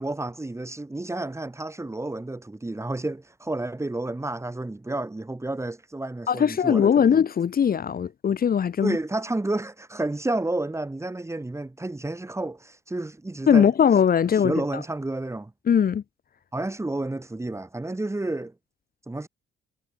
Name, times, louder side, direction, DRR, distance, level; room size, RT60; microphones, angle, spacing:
voice 1, 0.0-7.2 8.8-13.7 14.4-15.5 16.5-18.5 19.1-19.3, right 2 dB, 15° right, 7.2 m, -30 dB
voice 2, 6.3-9.0 13.5-14.5 15.7-16.0, left 8 dB, 50° left, 1.6 m, -20 dB
cardioid pair, 90°, 20 cm